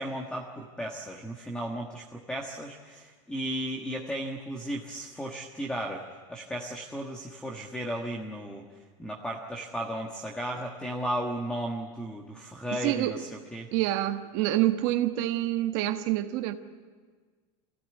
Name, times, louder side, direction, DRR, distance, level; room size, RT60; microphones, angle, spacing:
voice 1, 0.0-6.0 6.3-8.7 9.0-13.7, right 1 dB, 5° left, 1.4 m, -35 dB
voice 2, 12.7-13.2 13.7-16.5, right 14 dB, 55° right, 1.3 m, -27 dB
24.5 x 16.5 x 9.0 m
supercardioid pair, 160°, 16 cm